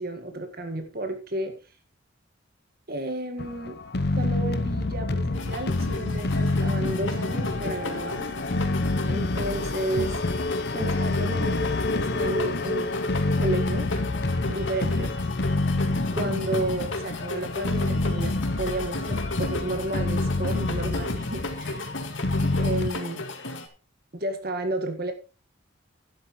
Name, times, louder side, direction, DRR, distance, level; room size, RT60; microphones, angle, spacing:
voice 1, 0.0-1.5 2.9-3.8 4.2-8.3 9.0-10.2 10.7-11.6 11.9-13.0 13.4-13.9 14.5-15.1 16.1-21.8 22.5-23.2 24.1-25.1, right 1 dB, 50° right, 7 dB, 1.8 m, -32 dB
sound 1, 3.4-22.9, left 2 dB, 50° left, 0.9 m, -27 dB
sound 2, 5.3-23.7, left 2 dB, 70° left, 1.9 m, -35 dB
12.0 x 11.5 x 3.1 m, 0.33 s
head